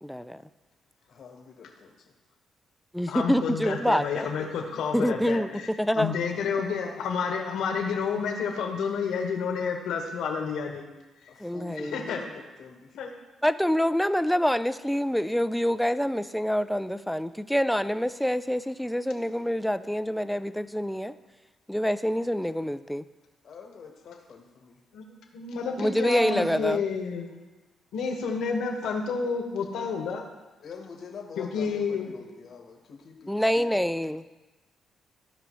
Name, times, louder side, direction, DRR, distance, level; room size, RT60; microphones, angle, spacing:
voice 1, 0.0-0.4 2.9-4.2 4.9-6.2 11.4-12.0 13.4-21.1 21.7-23.0 25.8-26.8 33.3-34.2, equal, ahead, 13 dB, 0.4 m, -26 dB
voice 2, 1.1-2.1 4.2-4.5 11.3-13.0 23.4-24.8 30.6-33.9, left 6 dB, 60° left, 0 dB, 1.2 m, -45 dB
voice 3, 3.1-5.7 5.9-10.9 11.9-12.2 13.0-13.1 24.9-25.0 25.3-27.4 27.9-30.3 31.4-32.1, left 5 dB, 80° left, 2 dB, 1.4 m, -30 dB
15.0 x 5.1 x 3.1 m, 1.1 s
cardioid pair, 90°, 0 cm